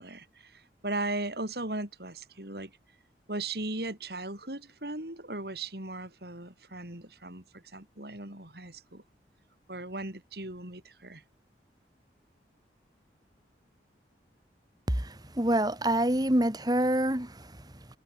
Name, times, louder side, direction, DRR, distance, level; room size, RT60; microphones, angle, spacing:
voice 1, 0.0-2.7 3.3-9.0 9.7-11.2, right 2 dB, 60° right, 4.6 m, -37 dB
voice 2, 14.9-17.9, right 1 dB, 20° right, 2.1 m, -27 dB
head